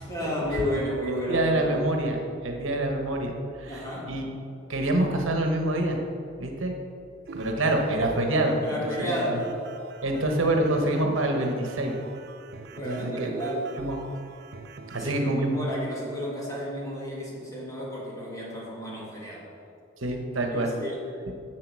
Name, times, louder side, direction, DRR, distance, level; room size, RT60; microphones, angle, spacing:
voice 1, 0.0-1.8 3.7-4.1 8.6-9.5 12.7-13.7 15.0-19.5 20.5-21.0, equal, 15° left, -6 dB, 2.4 m, -32 dB
voice 2, 1.3-4.3 4.7-6.0 6.4-6.7 7.3-9.4 10.0-11.9 12.8-13.3 13.8-14.0 14.9-15.7 20.0-20.7, right 1 dB, 80° right, 2 dB, 1.2 m, -26 dB
sound 1, 7.3-15.1, right 4 dB, 55° right, 0.6 m, -43 dB
7.7 x 7.5 x 6.3 m, 2.5 s
head